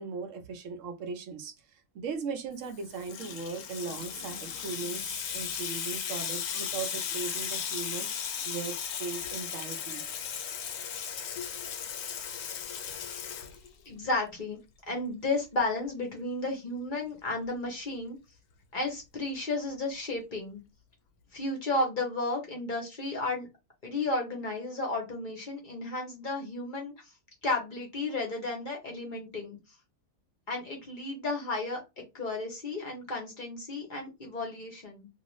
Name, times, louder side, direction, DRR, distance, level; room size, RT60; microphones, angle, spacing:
voice 1, 0.0-8.1 8.4-10.1, right 5 dB, 65° right, 0.9 m, -38 dB
Water tap faucet / Sink (filling or washing), 2.6-14.1, left 8 dB, 80° left, 1.0 m, -36 dB
voice 2, 13.9-14.6 14.9-18.2 18.7-20.6 21.3-23.5 23.8-26.9 27.4-29.6 30.5-31.8 32.1-35.1, left 2 dB, 45° left, 0.7 m, -33 dB
2.4 x 2.3 x 3.0 m
omnidirectional pair, 1.6 m